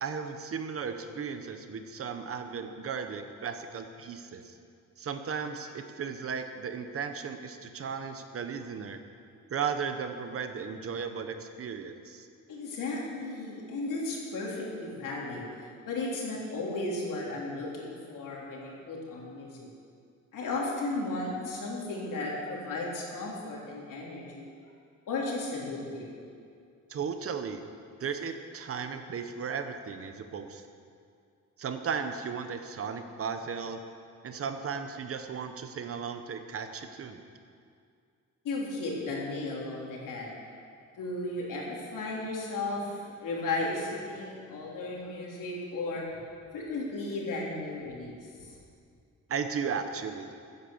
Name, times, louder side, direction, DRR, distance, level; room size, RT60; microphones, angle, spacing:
voice 1, 0.0-4.5 5.0-9.0 9.5-12.3 26.9-27.6 28.0-30.6 31.6-33.8 34.2-37.2 49.3-50.3, right 6 dB, 45° right, 7 dB, 1.0 m, -35 dB
voice 2, 12.5-19.7 20.3-24.5 25.1-26.1 38.4-40.3 41.0-46.2 46.5-48.5, left 2 dB, 80° left, -3 dB, 3.6 m, -35 dB
15.0 x 9.8 x 7.2 m, 2.3 s
wide cardioid pair, 175°, 31 cm